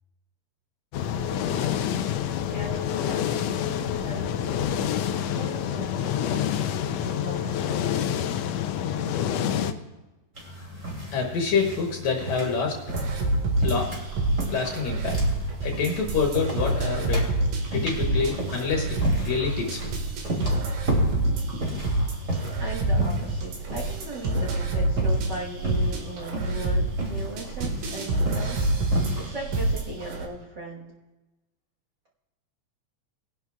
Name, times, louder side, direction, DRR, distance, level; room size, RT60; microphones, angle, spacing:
sound 1, 0.9-9.7, left 9 dB, 90° left, 1.4 m, -27 dB
voice 1, 2.5-8.5 22.6-30.9, right 1 dB, 50° right, -2 dB, 1.4 m, -39 dB
sound 2, 10.3-29.3, right 1 dB, 25° right, 3.2 m, -33 dB
voice 2, 10.5-12.8 13.6-14.0 14.5-15.2 15.6-17.3 17.7-19.9 21.3-21.4, left 5 dB, 70° left, 0 dB, 2.4 m, -27 dB
sound 3, 12.9-30.3, right 2 dB, 80° right, 3.2 m, -27 dB
20.5 x 10.5 x 2.3 m, 1.1 s
omnidirectional pair, 3.7 m